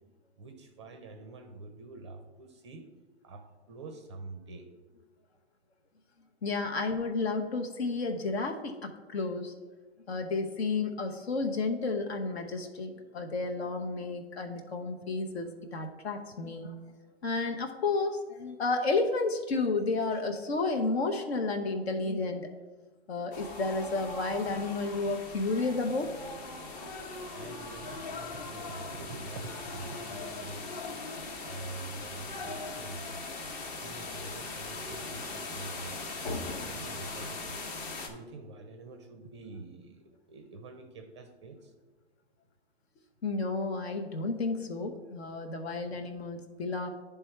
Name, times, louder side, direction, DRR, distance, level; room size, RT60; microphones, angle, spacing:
voice 1, 0.4-2.9 3.2-4.7 27.0-30.9 31.4-33.3 33.7-36.0 36.6-37.7 38.0-41.7, right 3 dB, 25° right, 6 dB, 0.4 m, -46 dB
voice 2, 6.4-9.5 10.1-16.8 17.2-22.5 23.1-26.1 36.2-36.7 43.2-46.9, left 3 dB, 70° left, 4 dB, 0.9 m, -32 dB
sound 1, 23.3-38.1, left 3 dB, 40° left, 1.0 m, -40 dB
9.8 x 3.4 x 4.5 m, 1.3 s
hypercardioid pair, 150°, 34 cm